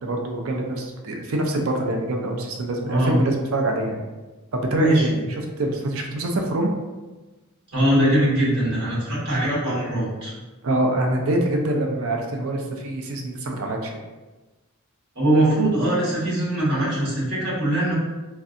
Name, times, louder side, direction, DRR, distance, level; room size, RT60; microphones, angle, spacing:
voice 1, 0.0-4.0 4.5-6.7 10.6-14.0, right 1 dB, 70° right, 2 dB, 0.5 m, -25 dB
voice 2, 2.8-3.2 4.8-5.0 7.7-10.3 15.1-17.9, right 1 dB, 55° right, -8 dB, 1.4 m, -21 dB
3.2 x 2.6 x 2.5 m, 1.2 s
head